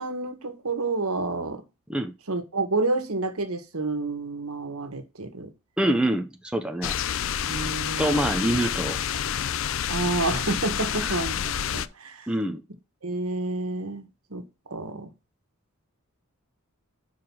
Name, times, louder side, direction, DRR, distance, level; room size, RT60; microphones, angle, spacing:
voice 1, 0.0-1.6 2.3-5.5 7.4-8.4 9.9-12.3 13.0-15.1, right 3 dB, 80° right, 1.5 m, -29 dB
voice 2, 5.8-6.9 8.0-9.0 10.9-11.1 12.3-12.6, right 1 dB, 5° right, 0.7 m, -25 dB
sound 1, 6.8-11.9, left 9 dB, 65° left, 0.4 m, -28 dB
5.7 x 4.8 x 6.2 m
head